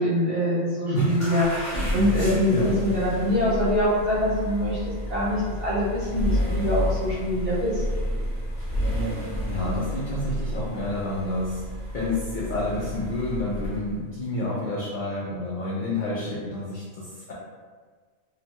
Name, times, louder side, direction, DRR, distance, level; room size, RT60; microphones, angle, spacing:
voice 1, 0.0-7.8, left 1 dB, 50° right, -9 dB, 1.1 m, -24 dB
voice 2, 0.9-1.4 2.1-2.8 9.1-11.7 11.9-17.3, left 1 dB, 85° left, -6 dB, 0.4 m, -29 dB
sound 1, 1.2-14.0, equal, 40° left, 0.8 m, -30 dB
2.9 x 2.1 x 2.8 m, 1.5 s
omnidirectional pair, 1.4 m